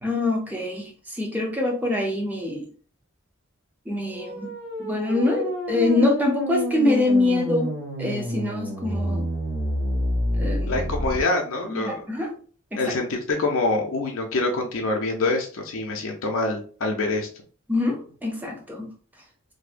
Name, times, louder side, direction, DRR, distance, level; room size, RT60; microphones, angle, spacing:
voice 1, 0.0-2.7 3.9-7.7 8.0-9.3 10.3-10.8 11.7-12.3 12.7-12.8 17.7-18.9, left 2 dB, 10° right, 1 dB, 0.5 m, -25 dB
sound 1, 4.1-11.2, equal, 60° right, 1.4 m, -28 dB
voice 2, 10.7-12.0 12.8-17.3, left 2 dB, 80° left, 1 dB, 0.5 m, -25 dB
2.6 x 2.1 x 2.4 m, 0.42 s
head